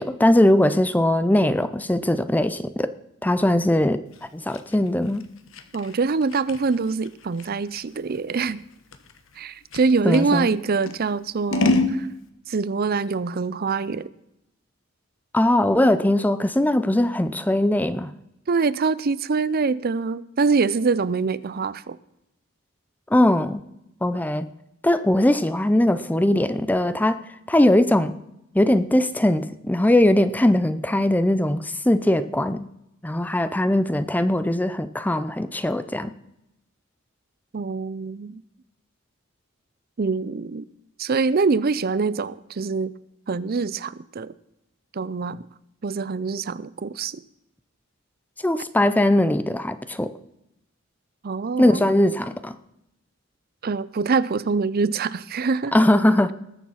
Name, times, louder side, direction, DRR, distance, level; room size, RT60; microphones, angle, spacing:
voice 1, 0.0-2.9 3.2-4.0 4.3-5.2 10.0-10.5 15.3-18.1 23.1-23.6 24.0-24.5 24.8-27.2 27.5-28.1 28.5-32.6 33.0-36.1 48.4-50.1 51.6-52.5 55.7-56.3, left 1 dB, 10° left, 13 dB, 0.5 m, -20 dB
Scissors, 4.1-10.3 10.8-12.0, left 2 dB, 70° left, 1.1 m, -28 dB
voice 2, 5.7-8.6 9.4-12.1 12.5-14.1 18.5-22.0 37.5-38.4 40.0-40.6 41.0-42.9 43.3-44.3 44.9-45.4 45.8-47.2 51.2-51.8 53.6-55.7, right 4 dB, 50° right, 17 dB, 0.5 m, -24 dB
19.5 x 7.1 x 5.8 m, 0.84 s
head